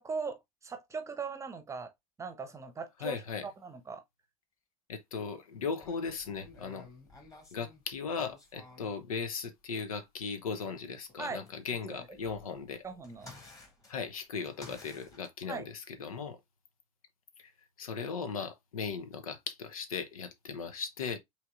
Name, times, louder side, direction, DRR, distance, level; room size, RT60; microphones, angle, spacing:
voice 1, 0.0-1.9 2.2-4.0 11.2-11.4 11.9-12.1 12.8-13.3 15.5-15.7, right 5 dB, 15° right, 0.9 m, -40 dB
voice 2, 3.0-3.4 4.9-6.9 7.5-12.8 13.9-16.4 17.4-17.5 17.8-21.2, left 5 dB, 70° left, 0.9 m, -37 dB
sound 1, 5.8-9.0 10.6-15.3, left 3 dB, 20° left, 2.1 m, -54 dB
5.6 x 3.4 x 2.4 m
figure-of-eight pair, 80°, 19 cm